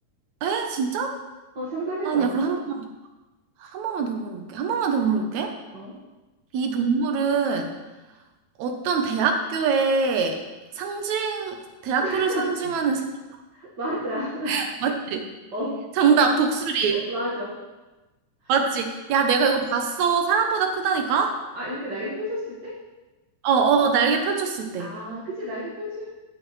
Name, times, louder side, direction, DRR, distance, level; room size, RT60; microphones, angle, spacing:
voice 1, 0.4-1.2 2.1-2.9 3.6-5.5 6.5-7.7 8.6-10.4 10.8-11.6 11.8-13.1 14.5-15.2 16.0-17.0 18.5-21.3 23.4-25.0, right 5 dB, 75° right, 4 dB, 2.0 m, -23 dB
voice 2, 1.6-2.3 5.7-6.0 12.0-12.5 13.5-14.6 15.5-15.8 16.9-17.6 21.6-22.7 24.8-26.1, equal, 40° right, -8 dB, 1.8 m, -31 dB
16.5 x 6.1 x 3.2 m, 1.1 s
omnidirectional pair, 3.5 m